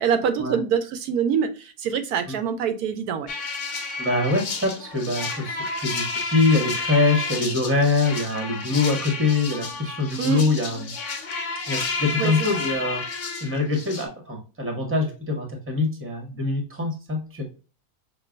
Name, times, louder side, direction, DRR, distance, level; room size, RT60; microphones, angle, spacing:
voice 1, 0.0-3.3 10.2-10.4 12.2-12.3, right 7 dB, 80° right, 1.1 m, -24 dB
sound 1, 3.3-14.1, left 4 dB, 55° left, 1.2 m, -31 dB
voice 2, 4.0-10.9 11.7-13.1 13.4-17.4, left 3 dB, 10° right, 1.0 m, -24 dB
5.9 x 2.6 x 2.4 m
omnidirectional pair, 1.6 m